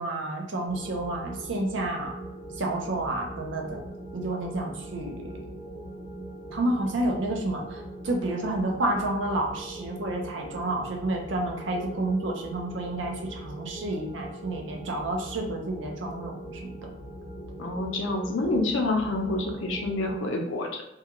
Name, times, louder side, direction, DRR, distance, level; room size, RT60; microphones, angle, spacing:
voice 1, 0.0-2.1 2.6-3.8 4.1-5.4 6.5-16.6, right 2 dB, 80° right, 1 dB, 0.6 m, -30 dB
sound 1, 0.7-20.2, right 1 dB, 35° left, 0.6 m, -41 dB
voice 2, 17.6-20.8, left 2 dB, 85° left, 2 dB, 0.5 m, -28 dB
2.3 x 2.3 x 2.9 m, 0.84 s
head